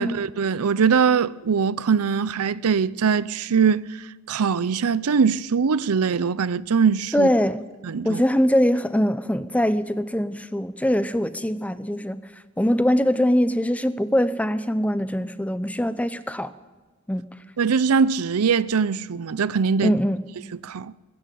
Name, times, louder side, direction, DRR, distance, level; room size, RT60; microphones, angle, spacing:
voice 1, 0.0-7.3 7.8-8.2 17.6-19.9 20.6-20.9, right 6 dB, 80° right, 0.5 m, -22 dB
voice 2, 7.1-7.6 8.0-12.2 12.6-16.5 17.1-17.3 19.8-20.2, equal, 5° left, 0.7 m, -22 dB
22.0 x 13.5 x 9.3 m
head